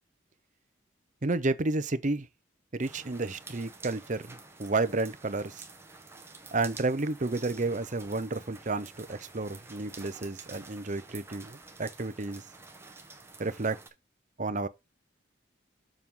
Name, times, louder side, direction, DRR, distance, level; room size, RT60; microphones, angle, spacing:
voice 1, 1.2-2.3 2.7-5.6 6.5-12.4 13.4-13.8 14.4-14.7, right 3 dB, 40° right, 0.7 m, -31 dB
sound 1, 2.8-13.9, right 3 dB, 15° right, 1.3 m, -49 dB
7.4 x 5.4 x 3.7 m
head